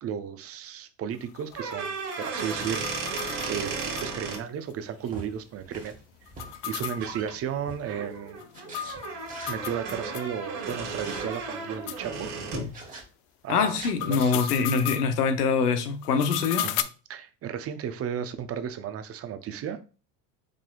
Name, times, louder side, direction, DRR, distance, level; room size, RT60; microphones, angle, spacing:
voice 1, 0.0-3.0 3.5-3.7 4.0-6.0 6.6-8.4 9.5-12.3 13.4-14.5 16.6-19.8, right 8 dB, 30° right, 0.6 m, -34 dB
sound 1, 1.1-4.4 4.7-4.8 5.1-5.2 6.3-10.3 10.7-10.8 11.3-11.4 11.9-12.0 13.7-15.1 16.0-16.8, left 12 dB, 55° left, 0.5 m, -36 dB
sound 2, 1.5-4.4 6.5-6.7 7.0-7.3 7.8-12.7, right 4 dB, 55° right, 1.8 m, -34 dB
sound 3, 5.1-8.1 8.5-9.6 10.6-11.3 12.7-13.1 13.6-13.9, right 2 dB, 15° right, 1.5 m, -45 dB
voice 2, 13.5-16.7, left 5 dB, 90° left, 0.7 m, -24 dB
4.9 x 3.7 x 2.3 m
hypercardioid pair, 80°, 45 cm